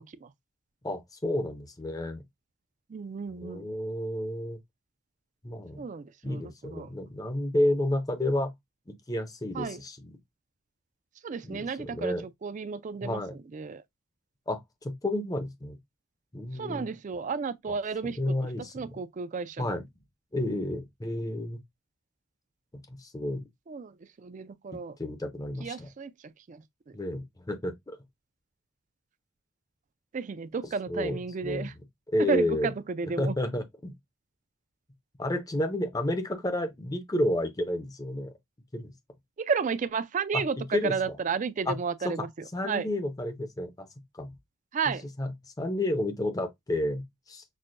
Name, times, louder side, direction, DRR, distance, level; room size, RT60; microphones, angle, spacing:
voice 1, 0.8-2.2 3.3-4.6 5.4-5.9 6.2-8.5 8.9-10.2 11.4-12.3 13.0-13.4 14.5-15.8 16.3-16.9 17.7-17.8 18.0-19.0 19.6-19.9 20.3-21.6 22.9-23.4 24.7-25.9 26.9-28.0 30.9-31.7 32.1-32.7 33.0-33.9 35.2-38.3 38.7-38.9 40.3-41.2 41.7-41.8 42.0-42.3 42.5-43.9 44.1-44.3 44.9-47.4, left 1 dB, 15° left, 0.5 m, -31 dB
voice 2, 2.9-3.7 5.8-6.9 9.5-9.8 11.2-12.1 12.4-13.2 13.5-13.8 16.6-18.2 18.7-19.6 23.7-23.9 24.2-24.9 25.6-26.1 26.5-26.6 30.1-31.7 32.3-33.3 39.4-42.3 42.6-42.9 44.7-45.0, right 5 dB, 35° right, 0.3 m, -32 dB
6.1 x 2.1 x 2.5 m
head